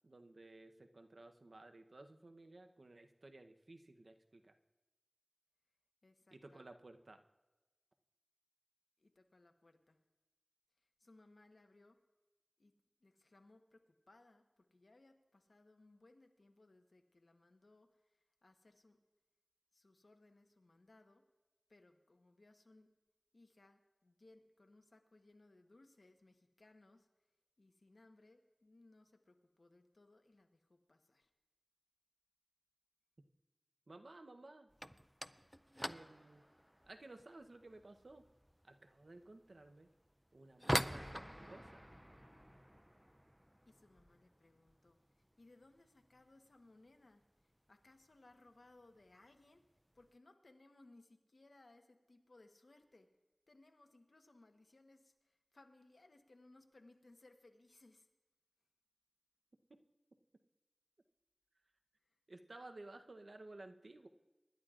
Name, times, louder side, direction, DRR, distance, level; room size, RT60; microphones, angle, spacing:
voice 1, 0.0-4.5 6.3-7.2 33.9-34.7 35.8-36.4 36.9-38.2 38.6-39.9 40.3-41.8 62.3-64.1, right 2 dB, 85° right, 6 dB, 0.8 m, -56 dB
voice 2, 6.0-6.7 9.0-10.0 10.8-12.0 12.6-12.7 13.0-19.0 19.7-21.3 21.7-22.9 23.3-27.1 27.6-31.3 43.6-45.0 45.4-47.2 47.7-49.6 49.9-53.1 53.5-58.1 62.0-62.2, left 2 dB, 80° left, 5 dB, 1.0 m, -65 dB
sound 1, 34.7-45.5 45.7-46.3 46.6-46.9 47.2-47.3 48.0-48.1 49.0-49.3 49.6-50.1, equal, 5° right, 0.4 m, -45 dB
25.0 x 11.5 x 2.5 m, 1.1 s
wide cardioid pair, 45°, 0 cm